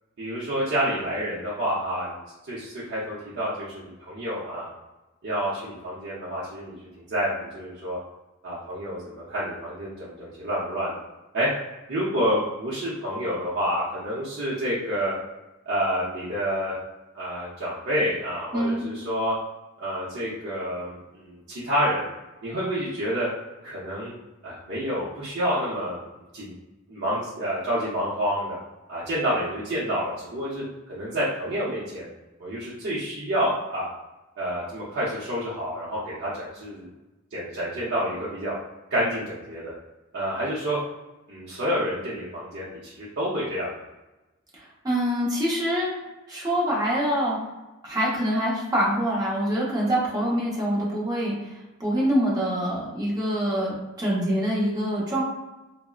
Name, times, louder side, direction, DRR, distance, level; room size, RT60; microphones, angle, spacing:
voice 1, 0.2-2.2 2.5-4.7 5.2-6.8 7.1-8.0 8.4-11.0 11.3-11.5 11.9-15.2 15.7-16.8 17.1-19.3 19.8-22.0 22.4-23.3 23.6-24.1 24.4-26.0 26.3-26.6 26.9-28.6 28.9-32.1 32.4-33.9 34.4-36.9 37.3-38.6 38.9-39.7 40.1-40.8 41.3-43.8, equal, 55° right, -9 dB, 0.6 m, -28 dB
voice 2, 18.5-18.8 44.5-45.9 46.3-47.4 47.8-51.5 51.8-55.2, equal, 20° right, -5 dB, 0.8 m, -25 dB
3.5 x 2.0 x 2.3 m, 1.1 s
head